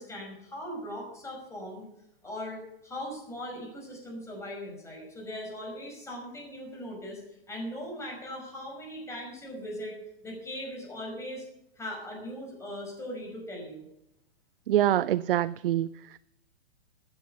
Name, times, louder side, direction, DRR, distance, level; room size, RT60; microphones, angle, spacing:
voice 1, 0.0-1.9 2.2-7.2 7.5-10.0 10.2-11.5 11.8-13.9, equal, 10° left, 0 dB, 5.3 m, -39 dB
voice 2, 14.7-16.2, right 12 dB, 60° right, 17 dB, 0.5 m, -25 dB
15.5 x 9.6 x 5.7 m, 0.82 s
hypercardioid pair, 135°, 31 cm